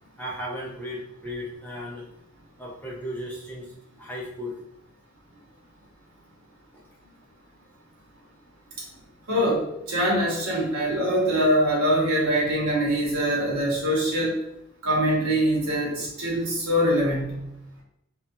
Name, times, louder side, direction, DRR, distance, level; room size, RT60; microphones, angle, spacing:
voice 1, 0.2-2.0 2.6-3.7 4.0-4.6 8.9-9.0, equal, 10° left, -5 dB, 0.6 m, -35 dB
voice 2, 9.3-14.4 14.8-17.4, equal, 80° right, -4 dB, 1.0 m, -23 dB
2.6 x 2.3 x 2.5 m, 0.82 s
head